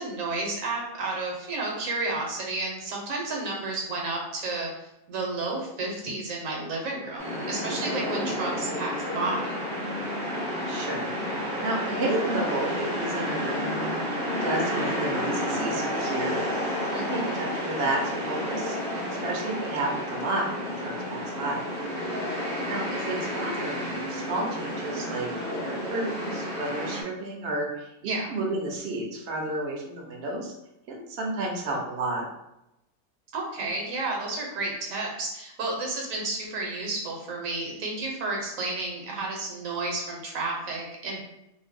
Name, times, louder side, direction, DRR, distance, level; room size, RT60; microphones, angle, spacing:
voice 1, 0.0-9.6 16.9-17.5 28.0-28.3 33.3-41.2, right 2 dB, 75° right, -1 dB, 1.1 m, -32 dB
sound 1, 7.2-27.0, equal, 20° left, 0.8 m, -31 dB
voice 2, 10.7-13.9 14.4-16.5 17.0-18.8 19.2-21.6 22.7-25.3 25.6-30.5 30.9-32.3, right 2 dB, 60° right, -1 dB, 0.8 m, -31 dB
2.6 x 2.1 x 3.5 m, 0.87 s
omnidirectional pair, 1.5 m